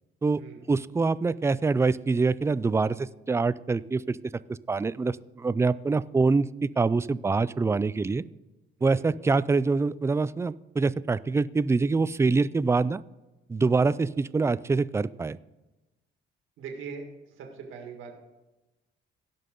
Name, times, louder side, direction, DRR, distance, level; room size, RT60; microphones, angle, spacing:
voice 1, 0.7-4.2 4.7-8.2 8.8-13.0 13.5-15.4, right 4 dB, 15° right, 17 dB, 0.3 m, -25 dB
voice 2, 16.6-18.1, right 5 dB, 85° right, 2 dB, 1.9 m, -41 dB
17.0 x 5.6 x 3.8 m, 1.0 s
cardioid pair, 90°, 20 cm